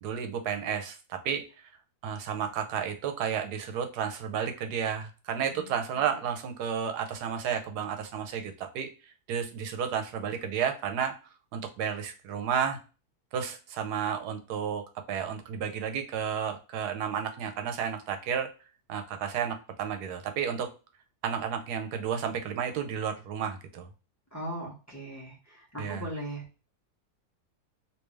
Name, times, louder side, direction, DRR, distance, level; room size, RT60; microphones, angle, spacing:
voice 1, 0.0-1.5 2.0-8.9 9.3-11.2 11.5-12.8 13.3-18.5 18.9-20.7 21.2-23.9 25.8-26.1, right 7 dB, 80° right, 6 dB, 1.1 m, -32 dB
voice 2, 24.3-26.4, right 1 dB, 10° left, -4 dB, 1.2 m, -39 dB
3.3 x 2.9 x 3.2 m, 0.33 s
omnidirectional pair, 1.7 m